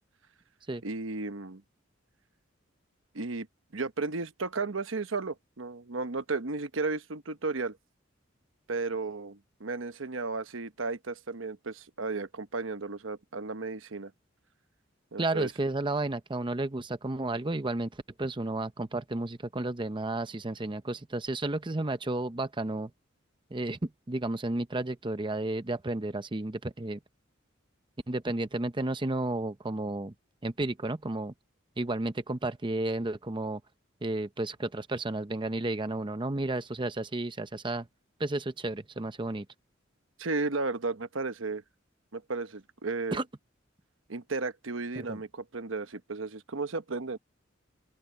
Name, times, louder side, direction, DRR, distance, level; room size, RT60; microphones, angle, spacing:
voice 1, 0.8-1.6 3.1-3.5 3.7-7.8 8.7-14.1 15.1-15.5 40.2-41.6 42.1-43.2 44.1-47.2, right 3 dB, 75° right, 1.1 m, -34 dB
voice 2, 15.2-22.9 23.5-27.0 28.1-30.1 30.4-31.3 31.8-33.6 34.0-37.9 38.2-39.5 43.1-43.2 45.0-45.2, right 2 dB, 25° right, 0.8 m, -32 dB
open air
head